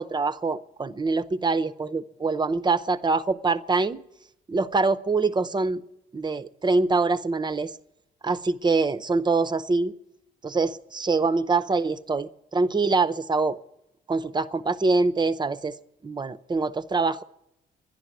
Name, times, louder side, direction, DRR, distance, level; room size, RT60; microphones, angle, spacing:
voice 1, 0.0-4.0 4.5-5.8 6.1-7.7 8.2-9.9 10.4-13.6 14.1-15.7 16.0-17.2, right 3 dB, 20° right, 0.6 m, -24 dB
11.5 x 10.5 x 9.3 m
cardioid pair, 90°, 20 cm